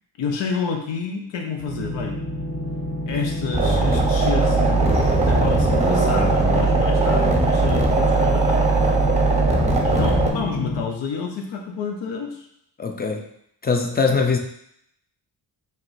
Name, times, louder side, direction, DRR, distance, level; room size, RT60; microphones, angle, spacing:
voice 1, 0.2-2.2 3.1-8.7 9.8-12.4, left 6 dB, 80° left, 2 dB, 0.7 m, -29 dB
sound 1, 1.5-10.8, left 2 dB, 40° left, 0.9 m, -28 dB
sound 2, 3.5-10.3, right 3 dB, 15° right, 0.7 m, -19 dB
voice 2, 12.8-13.3 13.6-14.4, left 4 dB, 20° left, 4 dB, 0.5 m, -21 dB
4.6 x 3.0 x 2.6 m, 0.73 s
cardioid pair, 90°, 43 cm